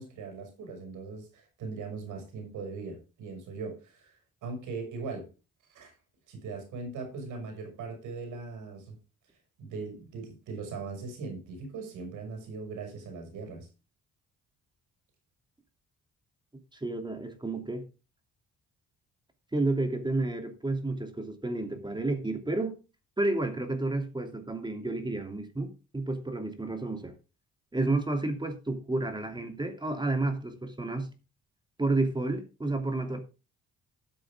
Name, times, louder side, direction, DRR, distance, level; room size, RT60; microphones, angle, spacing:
voice 1, 0.0-4.2 4.4-5.3 5.7-5.9 6.3-9.0 9.6-13.7, right 4 dB, 85° right, 6.2 m, -40 dB
voice 2, 16.7-17.8 19.5-22.8 23.2-27.1 27.7-31.1 31.8-33.2, right 2 dB, 15° right, 2.9 m, -31 dB
13.0 x 7.8 x 3.6 m
cardioid pair, 90°, 30 cm